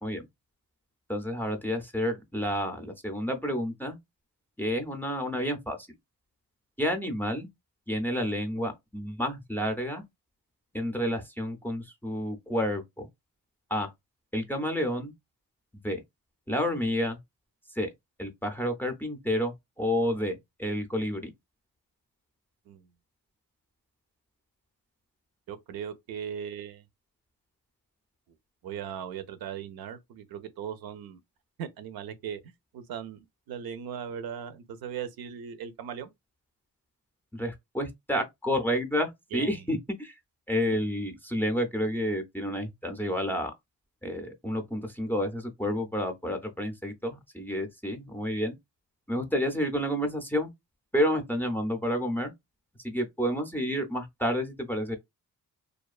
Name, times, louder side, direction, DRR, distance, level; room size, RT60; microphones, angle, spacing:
voice 1, 1.1-4.0 4.6-5.8 6.8-7.5 7.9-10.0 10.7-13.1 13.7-13.9 14.3-15.1 15.8-16.0 16.5-17.2 17.8-17.9 18.2-21.3 37.3-40.1 40.5-43.5 44.0-48.5 49.1-50.5 50.9-52.3 52.8-55.0, equal, 5° left, 0.4 m, -30 dB
voice 2, 25.5-26.9 28.6-31.2 31.6-36.1 39.3-39.7, right 8 dB, 75° right, 0.5 m, -38 dB
2.4 x 2.3 x 2.3 m
cardioid pair, 100°, 36 cm